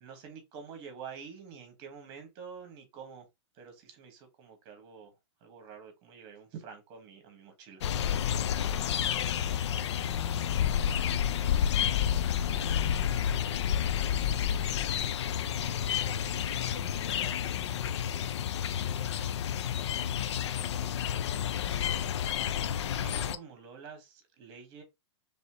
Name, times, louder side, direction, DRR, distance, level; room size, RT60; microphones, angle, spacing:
voice 1, 0.0-3.3 3.5-5.1 5.4-7.8 13.1-13.3 22.9-24.8, right 6 dB, 35° right, 1.7 m, -48 dB
sound 1, 7.8-23.4, left 9 dB, 70° left, 0.5 m, -30 dB
voice 2, 13.6-14.7 16.0-19.5, left 3 dB, 90° left, 1.5 m, -52 dB
4.2 x 3.4 x 3.0 m
hypercardioid pair, 150°, 15 cm